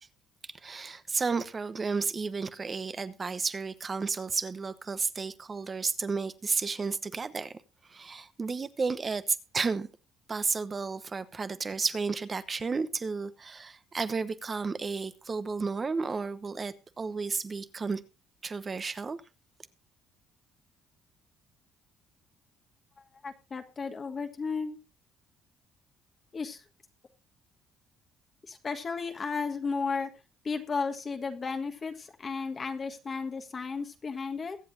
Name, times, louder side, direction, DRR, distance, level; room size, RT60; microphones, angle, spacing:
voice 1, 0.6-7.5 7.9-9.2 9.5-9.9 10.3-18.0 18.4-19.2, right 4 dB, 35° right, 1.1 m, -32 dB
voice 2, 23.2-24.8 26.3-26.6 28.5-30.1 30.4-34.6, left 5 dB, 35° left, 1.5 m, -34 dB
22.5 x 7.8 x 2.7 m
supercardioid pair, 75°, 0 cm